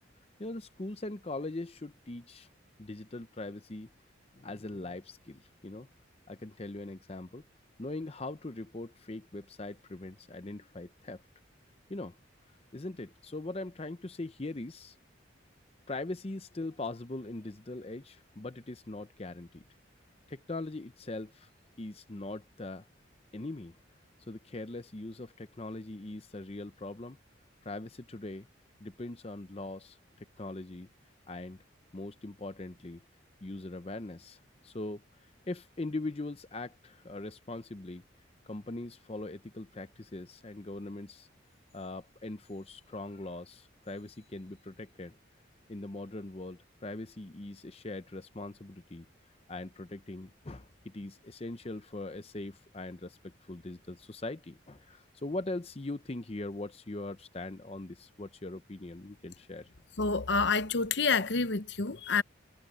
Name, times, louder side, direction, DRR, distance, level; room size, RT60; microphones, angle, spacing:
voice 1, 0.4-2.5 2.8-3.9 4.3-5.9 6.3-7.4 7.8-11.2 11.9-12.2 12.7-14.9 15.9-19.6 20.3-21.5 21.8-22.9 23.3-23.7 24.3-27.2 27.6-28.5 28.8-30.9 31.3-31.6 31.9-33.0 33.4-35.0 35.5-38.0 38.4-41.3 41.7-45.2 45.7-49.1 49.5-59.7, left 2 dB, 30° left, 0.6 m, -41 dB
voice 2, 60.0-62.2, left 4 dB, 60° left, 0.8 m, -28 dB
head